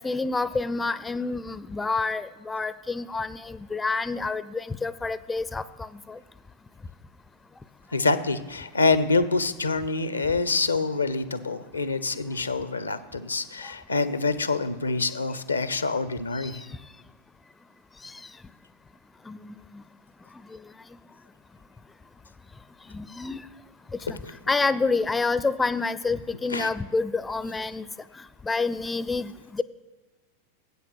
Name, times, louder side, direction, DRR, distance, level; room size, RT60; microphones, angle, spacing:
voice 1, 0.0-6.2 13.6-13.7 16.4-16.7 18.0-18.2 19.3-19.8 20.5-20.6 22.9-23.4 24.1-24.2 24.5-27.9 28.4-29.6, left 3 dB, 10° left, 16 dB, 0.4 m, -28 dB
voice 2, 7.9-16.6 26.5-26.7, left 3 dB, 80° left, 14 dB, 0.6 m, -26 dB
9.4 x 8.1 x 6.4 m, 1.3 s
figure-of-eight pair, 90°, 0 cm